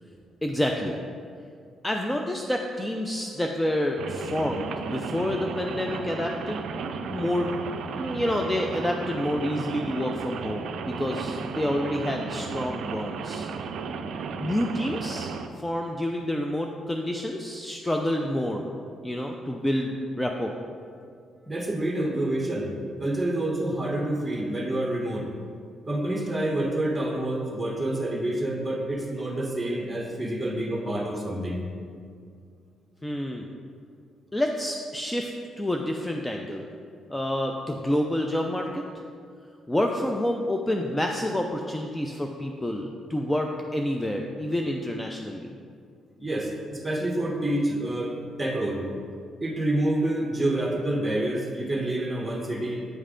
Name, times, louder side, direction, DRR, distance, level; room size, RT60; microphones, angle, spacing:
voice 1, 0.4-1.0 1.8-6.6 7.1-7.5 7.9-13.5 14.4-18.7 19.0-20.5 33.0-33.5 34.3-36.7 37.1-38.8 39.7-45.5, left 1 dB, 10° left, 2 dB, 0.4 m, -28 dB
Rain, 4.0-15.5, right 5 dB, 75° right, 0.3 m, -34 dB
voice 2, 21.5-22.7 23.0-25.3 25.9-31.6 46.2-48.9 49.4-52.9, right 1 dB, 15° right, 0 dB, 1.0 m, -28 dB
8.9 x 3.2 x 3.7 m, 2.2 s
cardioid pair, 90°, 0 cm